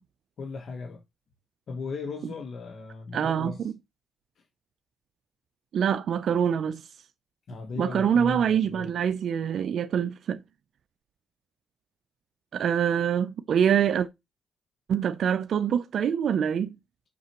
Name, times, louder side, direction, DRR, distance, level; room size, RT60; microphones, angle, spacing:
voice 1, 0.4-1.0 1.7-3.6 7.5-8.9, left 4 dB, 55° left, 1.2 m, -36 dB
voice 2, 3.1-3.7 5.7-6.9 7.8-10.4 12.5-14.1 14.9-16.7, right 8 dB, 60° right, 0.5 m, -25 dB
7.1 x 5.9 x 3.0 m
cardioid pair, 90°, 0 cm